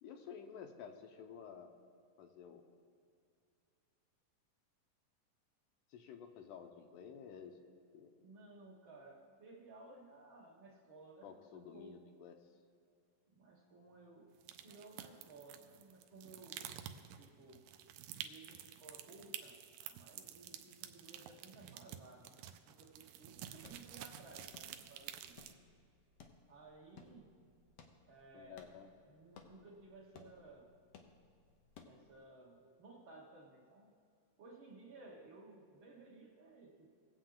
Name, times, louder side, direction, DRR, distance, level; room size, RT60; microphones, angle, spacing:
voice 1, 0.0-1.7 2.2-2.7 5.9-7.6 7.9-8.1 11.2-12.4 28.3-28.9, left 7 dB, 75° left, 6 dB, 2.1 m, -52 dB
voice 2, 8.2-11.9 13.3-14.4 14.6-16.6 17.2-17.6 18.2-25.4 26.5-27.3 28.1-28.7 29.1-30.7 31.8-33.9 34.4-36.9, right 3 dB, 55° right, -2 dB, 1.5 m, -58 dB
sound 1, 14.4-25.5, right 11 dB, 80° right, 2.1 m, -50 dB
sound 2, 23.2-32.2, left 5 dB, 90° left, 1.3 m, -62 dB
20.5 x 7.9 x 3.8 m, 2.3 s
omnidirectional pair, 4.0 m